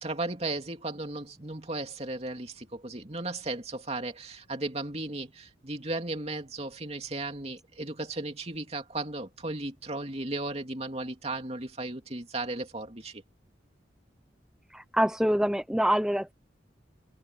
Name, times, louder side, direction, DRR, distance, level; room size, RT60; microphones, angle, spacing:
voice 1, 0.0-13.2, right 2 dB, 35° right, 2.8 m, -35 dB
voice 2, 14.7-16.3, equal, 5° right, 0.9 m, -25 dB
head